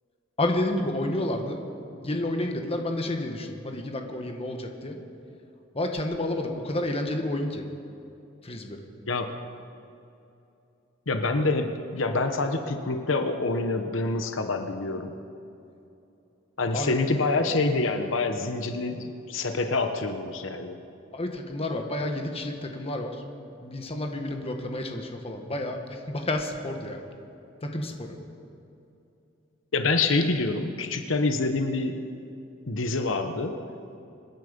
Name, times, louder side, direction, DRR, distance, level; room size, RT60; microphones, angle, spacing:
voice 1, 0.4-1.6 2.0-5.0 5.7-7.6 8.4-8.8 16.7-16.9 21.1-23.2 23.6-27.0 27.6-28.2, left 1 dB, 30° left, 4 dB, 1.5 m, -30 dB
voice 2, 11.1-15.1 16.6-20.8 29.7-32.0 32.7-33.6, left 3 dB, 80° left, 6 dB, 1.0 m, -26 dB
26.0 x 10.5 x 5.3 m, 2.8 s
head